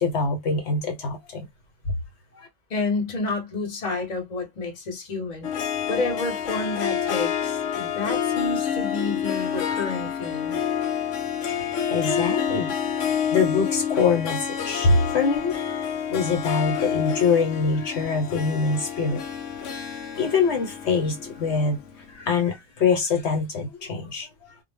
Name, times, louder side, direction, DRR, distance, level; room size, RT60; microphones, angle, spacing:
voice 1, 0.0-1.4 2.3-2.5 11.4-12.7 13.0-15.5 15.8-19.2 20.2-21.8 22.1-24.5, left 4 dB, 70° left, 1.1 m, -24 dB
voice 2, 2.7-5.5 5.9-10.6, left 3 dB, 40° left, 0.9 m, -30 dB
Harp, 5.4-21.9, left 8 dB, 90° left, 0.9 m, -28 dB
2.2 x 2.1 x 3.3 m
omnidirectional pair, 1.2 m